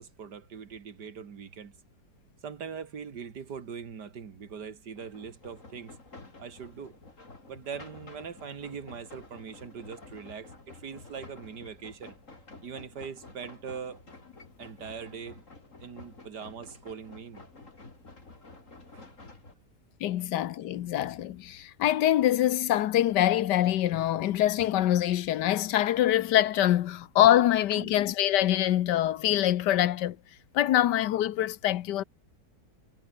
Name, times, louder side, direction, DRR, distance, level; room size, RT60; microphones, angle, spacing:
voice 1, 0.0-1.7 2.4-6.0 6.4-6.9 7.5-12.1 12.6-14.0 14.6-15.4 15.8-17.4 18.9-19.1 27.8-28.0, right 6 dB, 75° right, 2.5 m, -41 dB
sound 1, 5.0-19.5, left 3 dB, 45° left, 4.2 m, -50 dB
voice 2, 20.0-30.2 30.5-32.0, left 12 dB, 80° left, 1.4 m, -24 dB
omnidirectional pair, 1.8 m